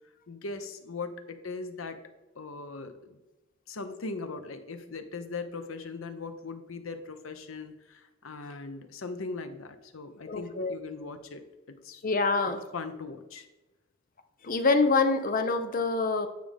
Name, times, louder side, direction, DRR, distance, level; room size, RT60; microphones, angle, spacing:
voice 1, 0.3-2.0 2.3-3.2 3.7-12.0 12.7-13.5, left 3 dB, 85° left, 9 dB, 0.8 m, -39 dB
voice 2, 10.3-10.8 12.0-12.6 14.4-16.3, left 3 dB, 45° left, 8 dB, 0.7 m, -25 dB
9.4 x 5.1 x 3.4 m, 1.1 s
head